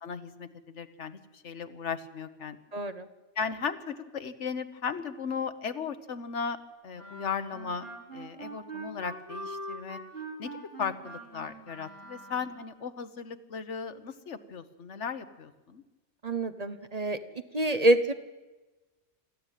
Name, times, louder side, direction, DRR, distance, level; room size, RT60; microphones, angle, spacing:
voice 1, 0.0-1.2 1.4-2.6 3.4-6.6 6.8-7.9 8.1-10.0 10.4-15.8, left 6 dB, 80° left, 11 dB, 1.5 m, -36 dB
voice 2, 2.7-3.1 16.2-17.2 17.5-18.1, right 1 dB, 35° right, 10 dB, 1.0 m, -26 dB
Wind instrument woodwind instrument, 6.9-12.6, right 2 dB, 55° right, 5.8 m, -43 dB
25.5 x 14.0 x 9.2 m, 1.2 s
omnidirectional pair, 1.2 m